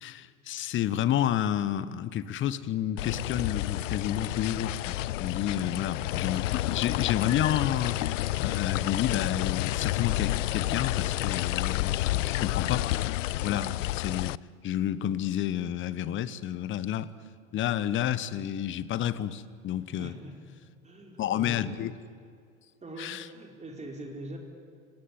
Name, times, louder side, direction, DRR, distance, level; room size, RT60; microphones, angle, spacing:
voice 1, 0.0-8.0 8.4-12.9 13.4-14.4 14.6-17.1 17.5-20.1 21.2-21.9 23.0-23.3, left 11 dB, 30° left, 1.0 m, -30 dB
sound 1, 3.0-14.4, left 16 dB, 65° left, 0.5 m, -30 dB
voice 2, 20.0-20.5 20.8-21.7 22.8-24.4, right 1 dB, 15° right, 4.3 m, -42 dB
27.5 x 16.0 x 9.7 m
figure-of-eight pair, 85°, 41 cm